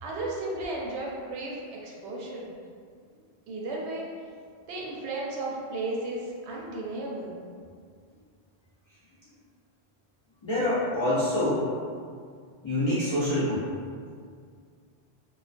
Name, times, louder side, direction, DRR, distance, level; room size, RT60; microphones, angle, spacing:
voice 1, 0.0-2.5 3.5-4.1 4.7-7.3, right 2 dB, 90° right, -3 dB, 0.8 m, -34 dB
voice 2, 10.4-11.7 12.6-13.6, left 1 dB, 45° left, -11 dB, 0.4 m, -26 dB
2.3 x 2.2 x 2.4 m, 2.1 s
omnidirectional pair, 1.1 m